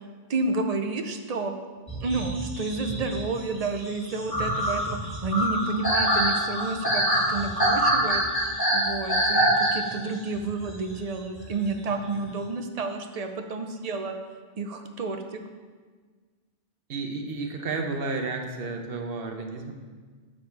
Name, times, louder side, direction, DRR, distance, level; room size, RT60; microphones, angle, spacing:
voice 1, 0.3-1.5 2.0-14.1 14.6-15.4, right 3 dB, 45° right, 6 dB, 0.6 m, -30 dB
sound 1, 1.9-10.1 10.4-10.7 11.4-11.5 11.9-12.1, right 1 dB, 20° left, 1.9 m, -25 dB
voice 2, 16.9-19.7, right 3 dB, 65° right, 4 dB, 1.0 m, -32 dB
6.9 x 5.2 x 4.5 m, 1.5 s
omnidirectional pair, 1.0 m